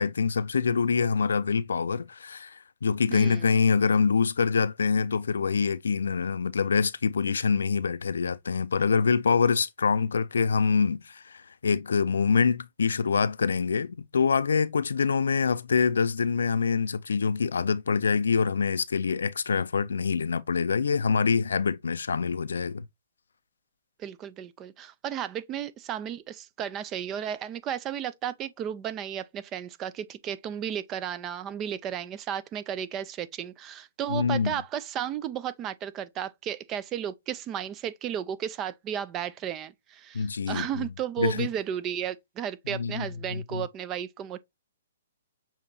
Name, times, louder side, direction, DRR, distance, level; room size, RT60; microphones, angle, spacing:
voice 1, 0.0-22.9 34.1-34.6 40.1-40.9 41.2-41.5 42.7-43.1 43.3-43.6, left 5 dB, 85° left, 0.4 m, -25 dB
voice 2, 3.1-3.5 24.0-44.4, right 9 dB, 25° right, 0.4 m, -34 dB
7.0 x 2.9 x 2.7 m
hypercardioid pair, 145°, 0 cm